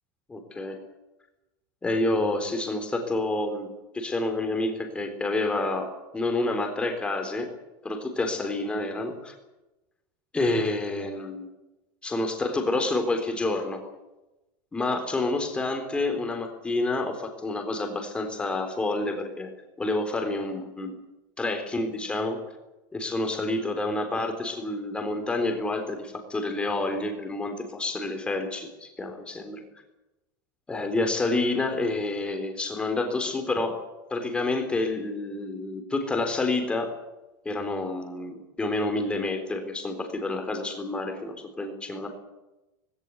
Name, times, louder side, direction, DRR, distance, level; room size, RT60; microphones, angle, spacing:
voice 1, 0.3-0.8 1.8-5.9 6.1-7.5 7.8-9.3 10.3-11.5 12.0-13.8 14.7-19.5 19.8-21.0 21.4-22.4 22.9-29.6 30.7-33.7 34.1-36.9 37.5-42.1, left 2 dB, 10° left, 5 dB, 3.8 m, -28 dB
19.0 x 17.5 x 9.6 m, 1.0 s
supercardioid pair, 170°, 11 cm